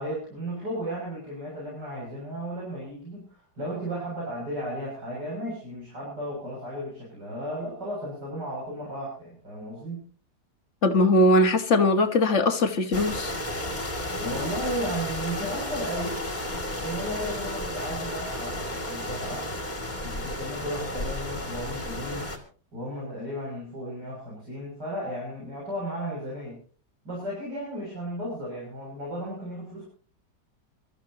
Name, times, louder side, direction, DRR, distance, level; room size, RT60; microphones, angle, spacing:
voice 1, 0.0-10.0 14.2-16.2 16.8-19.5 20.0-22.2 22.7-26.6 27.0-29.8, equal, 75° right, -5 dB, 7.6 m, -34 dB
voice 2, 10.8-13.3, left 1 dB, 45° left, 7 dB, 1.7 m, -20 dB
sound 1, 12.9-22.4, left 1 dB, 25° left, 2.7 m, -33 dB
27.0 x 14.0 x 2.9 m, 0.41 s
omnidirectional pair, 1.8 m